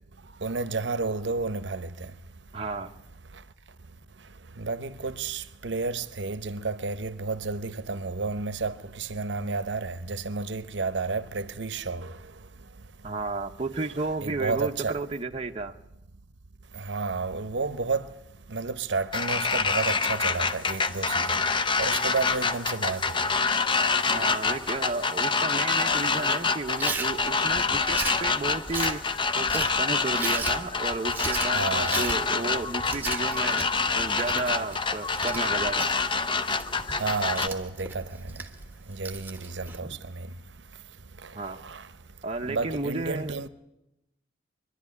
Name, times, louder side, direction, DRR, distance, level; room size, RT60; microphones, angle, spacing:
voice 1, 0.4-1.9 4.6-12.1 14.2-15.0 16.8-18.1 18.5-21.4 21.8-23.2 28.9-29.0 31.5-32.0 37.0-38.0 38.9-40.3 41.4-41.9 42.5-43.5, right 4 dB, 65° right, 0.8 m, -31 dB
voice 2, 2.5-2.9 13.0-15.8 24.1-29.0 29.4-33.7 33.9-35.9 39.8-40.0 41.3-41.6 42.2-43.4, right 3 dB, 30° right, 0.7 m, -32 dB
sound 1, 19.1-37.5, left 4 dB, 25° left, 0.7 m, -26 dB
Chewing mastication, 26.8-39.8, right 3 dB, 10° right, 1.3 m, -37 dB
23.5 x 11.5 x 9.6 m
head